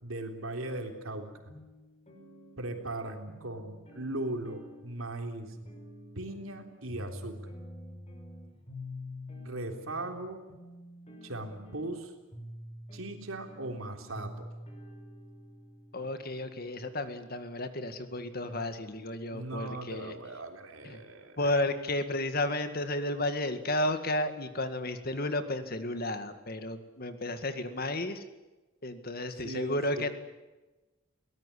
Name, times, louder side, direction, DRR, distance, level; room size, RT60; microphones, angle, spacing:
voice 1, 0.0-1.3 2.6-5.6 6.2-7.5 9.4-10.4 11.2-12.1 12.9-14.5 19.3-21.6 29.4-30.1, right 2 dB, 85° right, 4 dB, 3.6 m, -38 dB
sound 1, 1.1-17.3, left 1 dB, 30° left, 5.7 m, -48 dB
voice 2, 15.9-20.1 20.8-21.0 21.4-28.2 28.8-30.1, left 1 dB, 45° left, 9 dB, 2.0 m, -32 dB
22.5 x 18.5 x 10.0 m, 1.1 s
head